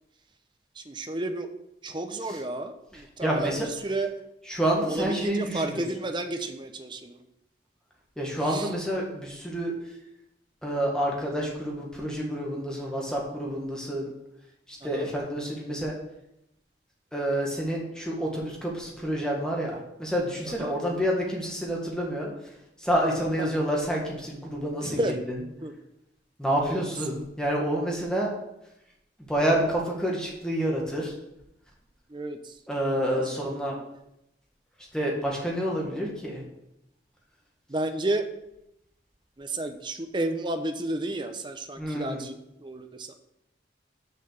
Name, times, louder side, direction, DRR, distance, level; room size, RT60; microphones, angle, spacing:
voice 1, 0.8-1.5 1.8-4.1 4.9-7.1 8.5-8.7 14.9-15.1 20.6-20.7 23.4-23.5 24.8-25.1 25.6-25.7 26.6-26.8 32.1-32.4 33.1-33.2 37.7-38.2 39.4-43.1, right 2 dB, 25° right, 7 dB, 0.7 m, -31 dB
voice 2, 2.9-3.7 4.4-5.8 8.2-9.7 10.6-14.1 14.7-15.9 17.1-22.3 22.8-25.4 26.4-28.3 29.3-31.1 32.7-33.7 34.9-36.4 41.8-42.2, right 1 dB, 5° left, -2 dB, 1.7 m, -28 dB
6.7 x 5.8 x 6.7 m, 0.84 s
head